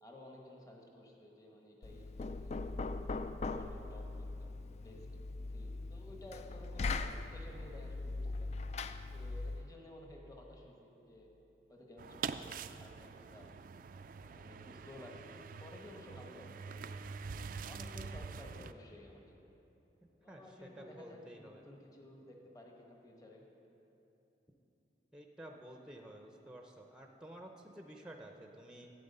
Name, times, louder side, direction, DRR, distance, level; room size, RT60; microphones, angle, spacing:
voice 1, 0.0-2.7 3.4-4.6 4.8-5.1 5.5-8.5 9.1-11.3 11.7-13.6 14.2-19.5 20.2-23.4, left 1 dB, 20° left, 0 dB, 1.1 m, -55 dB
Knock, 1.8-9.7, left 3 dB, 40° left, 0.3 m, -40 dB
sound 1, 12.0-18.7, right 5 dB, 50° right, 0.3 m, -45 dB
voice 2, 20.3-21.6 25.1-28.9, right 1 dB, 5° right, 2 dB, 0.6 m, -52 dB
12.5 x 8.8 x 5.4 m, 3.0 s
head